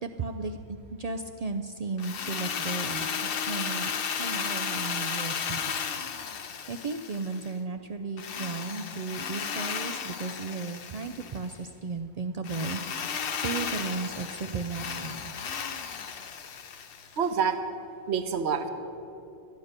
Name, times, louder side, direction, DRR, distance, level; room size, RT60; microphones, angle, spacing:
voice 1, 0.0-3.1 3.5-3.9 4.2-5.8 6.7-13.2 13.4-15.3, right 4 dB, 85° right, 6 dB, 0.3 m, -35 dB
Drill, 2.0-7.5 8.2-11.5 12.4-17.2, left 7 dB, 55° left, 0.8 m, -34 dB
voice 2, 17.2-17.6 18.1-18.7, right 6 dB, 60° right, 8 dB, 1.1 m, -27 dB
12.0 x 9.3 x 6.5 m, 2.9 s
omnidirectional pair, 1.3 m